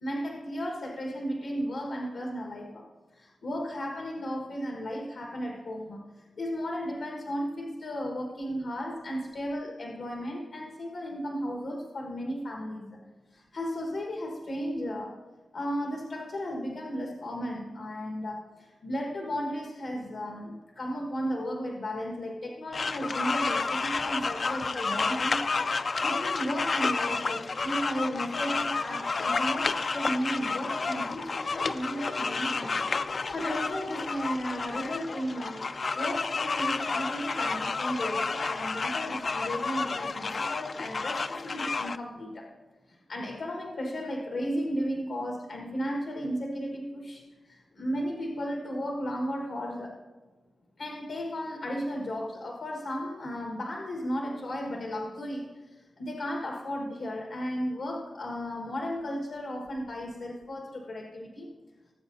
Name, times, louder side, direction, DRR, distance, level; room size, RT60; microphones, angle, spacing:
voice 1, 0.0-2.8 3.2-13.0 13.3-15.1 15.5-18.4 18.8-25.4 25.8-32.8 33.0-35.6 35.9-42.5 43.1-47.2 47.5-49.9 50.8-55.4 56.0-61.5, equal, 80° left, 0 dB, 1.5 m, -34 dB
sound 1, 22.7-42.0, left 4 dB, 50° left, 0.4 m, -30 dB
19.0 x 7.7 x 2.7 m, 1.3 s
wide cardioid pair, 90°, 0 cm